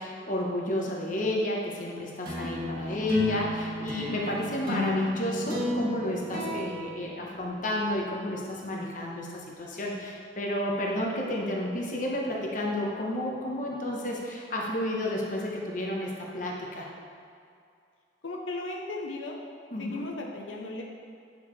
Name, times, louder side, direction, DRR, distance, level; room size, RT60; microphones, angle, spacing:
voice 1, 0.0-16.9 19.7-20.1, left 1 dB, 40° left, -2 dB, 1.1 m, -31 dB
Flamenco Open Strings, 2.2-7.9, left 1 dB, 50° right, 1.7 m, -32 dB
voice 2, 2.4-2.8 18.2-19.4 19.8-20.8, left 2 dB, 85° left, 0 dB, 0.7 m, -37 dB
9.5 x 6.0 x 3.2 m, 2.4 s
head